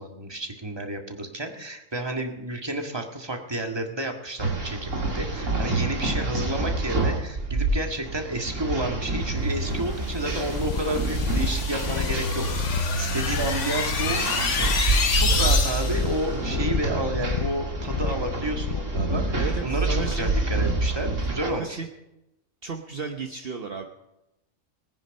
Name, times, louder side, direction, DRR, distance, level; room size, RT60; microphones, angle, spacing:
voice 1, 0.0-21.8, right 1 dB, 20° right, 3 dB, 1.8 m, -31 dB
sound 1, 4.4-21.5, right 2 dB, 80° right, 2.8 m, -27 dB
sound 2, 10.2-16.2, left 5 dB, 70° left, 1.5 m, -29 dB
sound 3, 10.4-21.0, left 7 dB, 55° left, 0.4 m, -33 dB
voice 2, 19.4-20.3 21.4-21.9 22.6-23.9, right 5 dB, 50° right, 4 dB, 1.2 m, -33 dB
20.5 x 9.8 x 5.3 m, 0.89 s
omnidirectional pair, 1.3 m